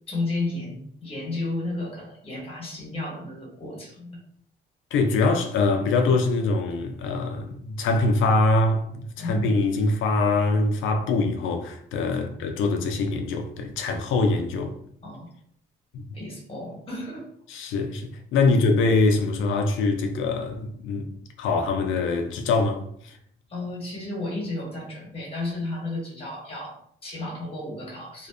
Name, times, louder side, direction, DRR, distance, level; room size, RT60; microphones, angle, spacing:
voice 1, 0.1-4.2 9.2-9.5 12.1-12.3 15.0-15.3 16.1-17.3 23.5-28.3, left 2 dB, 30° left, 1.1 m, -33 dB
voice 2, 4.9-14.8 15.9-16.0 17.5-21.1 21.4-23.2, left 3 dB, 80° left, 0.4 m, -23 dB
2.5 x 2.1 x 2.3 m
cardioid pair, 90°, 20 cm